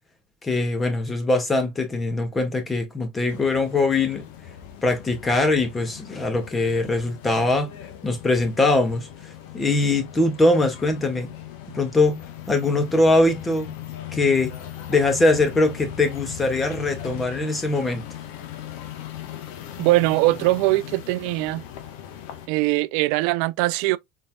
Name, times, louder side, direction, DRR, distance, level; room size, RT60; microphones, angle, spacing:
voice 1, 0.4-4.2 4.8-7.7 8.0-9.1 9.5-11.3 11.7-13.7 14.1-14.5 14.9-18.0, left 2 dB, 20° left, 1.8 m, -22 dB
sound 1, 3.3-22.5, left 11 dB, 75° left, 1.2 m, -39 dB
voice 2, 19.8-21.6 22.5-24.0, right 20 dB, 70° right, 0.4 m, -21 dB
4.5 x 4.0 x 2.3 m
supercardioid pair, 95°, 0 cm